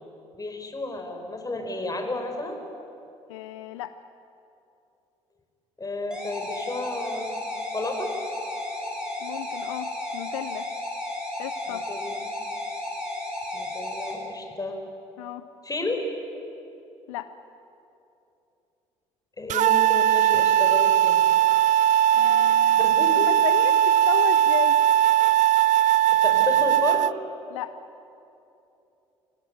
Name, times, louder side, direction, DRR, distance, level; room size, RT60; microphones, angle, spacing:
voice 1, 0.3-2.6 5.8-8.1 11.7-12.3 13.5-14.8 15.6-16.0 19.4-21.2 22.8-23.3 26.2-27.1, left 2 dB, 20° left, 4 dB, 4.9 m, -32 dB
voice 2, 3.3-3.9 9.2-10.7 11.4-11.8 15.2-15.4 17.1-17.3 22.1-24.8 27.5-27.7, left 14 dB, 75° left, 13 dB, 0.6 m, -34 dB
sound 1, 6.1-14.1, left 1 dB, 5° right, 7.6 m, -33 dB
sound 2, 19.5-27.1, right 12 dB, 50° right, 0.4 m, -19 dB
25.5 x 17.0 x 9.8 m, 2.8 s
figure-of-eight pair, 50°, 16 cm